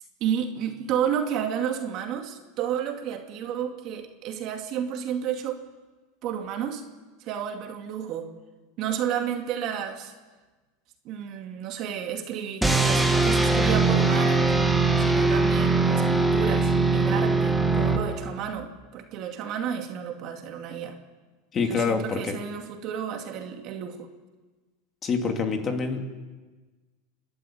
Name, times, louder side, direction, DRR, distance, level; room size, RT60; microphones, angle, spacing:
voice 1, 0.2-5.6 6.2-6.8 7.2-8.3 8.8-10.1 11.0-14.5 15.0-21.0 21.6-24.1, right 8 dB, 40° right, 4 dB, 2.4 m, -31 dB
sound 1, 12.6-18.5, right 3 dB, ahead, 1.6 m, -21 dB
voice 2, 21.5-22.4 25.0-26.2, left 5 dB, 25° left, 4 dB, 2.6 m, -26 dB
29.5 x 12.0 x 8.9 m, 1.3 s
supercardioid pair, 150°, 0 cm